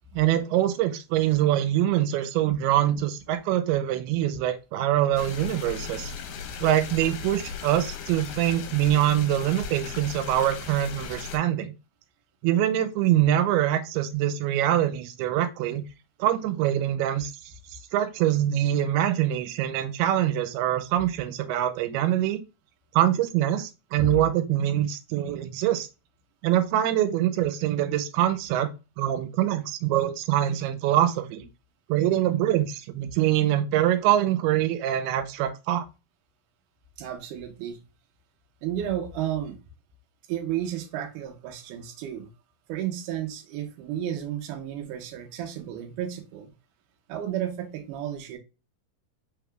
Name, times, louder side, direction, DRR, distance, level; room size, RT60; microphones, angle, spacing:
voice 1, 0.1-6.1 6.6-11.7 12.4-15.9 16.2-17.3 17.9-22.4 22.9-25.9 26.4-31.5 31.9-35.9, right 12 dB, 90° right, 10 dB, 2.6 m, -24 dB
sound 1, 5.2-11.4, left 6 dB, 75° left, 2.3 m, -37 dB
voice 2, 37.0-37.8 38.6-39.6 40.3-42.3 42.7-46.5 47.1-48.4, right 10 dB, 70° right, 4 dB, 2.1 m, -32 dB
5.5 x 3.5 x 2.2 m, 0.28 s
omnidirectional pair, 4.4 m